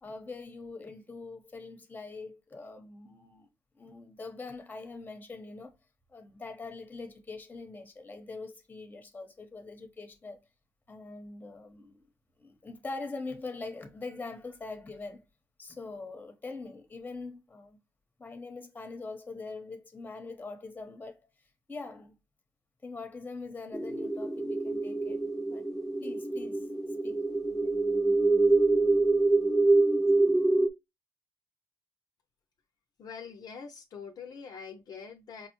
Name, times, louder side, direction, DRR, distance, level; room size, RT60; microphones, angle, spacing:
voice 1, 0.0-3.5 3.7-5.8 6.1-10.4 10.9-12.1 12.4-15.2 15.6-17.8 18.2-21.3 21.7-22.1 22.8-25.2 25.5-25.7 26.0-26.7 27.0-27.2 27.6-27.7, left 3 dB, 20° left, 0.9 m, -43 dB
sound 1, 23.7-30.7, right 2 dB, ahead, 0.4 m, -26 dB
voice 2, 33.0-35.5, left 6 dB, 55° left, 0.5 m, -44 dB
4.9 x 2.0 x 2.9 m
cardioid pair, 85°, 8 cm